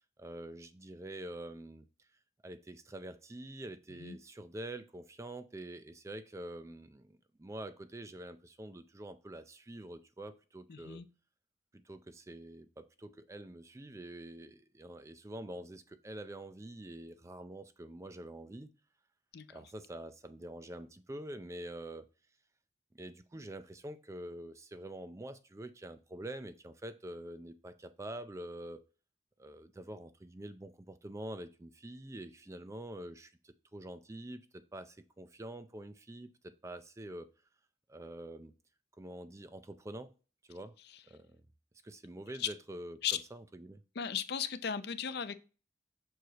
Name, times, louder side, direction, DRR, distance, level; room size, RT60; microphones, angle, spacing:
voice 1, 0.2-1.9 2.4-11.0 11.7-18.7 19.5-22.1 22.9-28.8 29.4-37.3 37.9-38.5 39.0-40.1 40.5-40.7 41.1-41.4 41.8-43.0 43.3-43.8, right 1 dB, 15° right, 0.4 m, -46 dB
voice 2, 10.7-11.1 19.3-19.6 40.9-41.0 42.4-42.5 43.0-43.2 43.9-45.3, left 8 dB, 60° left, 0.6 m, -36 dB
6.3 x 4.7 x 4.0 m
head